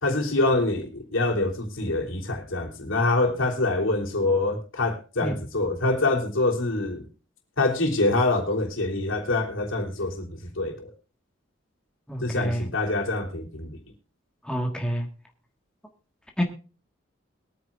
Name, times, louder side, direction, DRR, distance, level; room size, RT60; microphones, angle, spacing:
voice 1, 0.0-7.1 7.6-10.9 12.2-13.8, left 2 dB, 80° left, 0 dB, 3.2 m, -25 dB
voice 2, 12.1-12.7 14.4-15.1 16.4-16.5, equal, 5° left, 2 dB, 1.5 m, -27 dB
22.0 x 9.4 x 2.4 m, 0.35 s
head